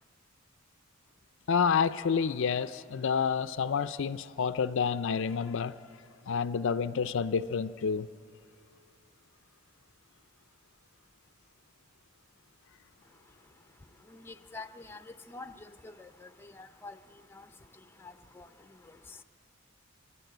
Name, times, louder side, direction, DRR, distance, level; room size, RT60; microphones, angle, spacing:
voice 1, 1.5-5.7 6.3-8.1, left 6 dB, 60° left, 12 dB, 0.4 m, -29 dB
voice 2, 14.1-15.0 15.3-15.5 15.8-16.3 16.6-17.0 18.0-18.5, left 3 dB, 10° left, 8 dB, 0.5 m, -46 dB
25.5 x 20.0 x 8.0 m, 2.7 s
head